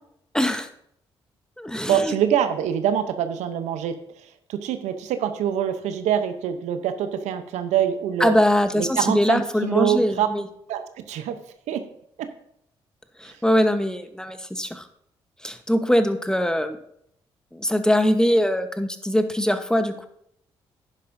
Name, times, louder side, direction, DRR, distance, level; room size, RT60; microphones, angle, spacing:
voice 1, 0.3-0.7 1.6-2.1 8.2-10.5 13.2-14.8 15.4-16.8 17.5-20.1, equal, 5° left, 9 dB, 1.0 m, -22 dB
voice 2, 1.9-3.9 4.5-8.3 8.7-10.3 10.7-11.3 11.7-11.8 12.2-12.3 13.3-13.4, right 9 dB, 80° right, 9 dB, 0.8 m, -24 dB
11.0 x 9.8 x 2.7 m, 0.73 s
hypercardioid pair, 45°, 12 cm